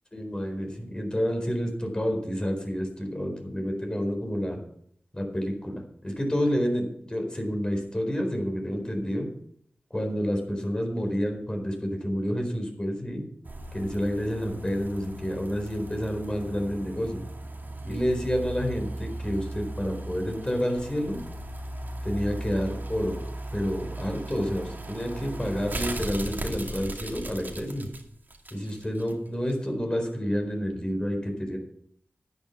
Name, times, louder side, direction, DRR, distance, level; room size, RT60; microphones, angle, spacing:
voice 1, 0.1-4.6 5.1-9.3 9.9-13.2 13.7-17.2 17.8-21.2 22.0-23.2 23.5-27.9 28.5-31.6, equal, 20° left, 3 dB, 4.3 m, -29 dB
sound 1, 13.4-29.1 29.5-29.6, right 1 dB, 50° right, 2.3 m, -37 dB
10.5 x 10.5 x 5.9 m, 0.68 s
wide cardioid pair, 55°, 4 cm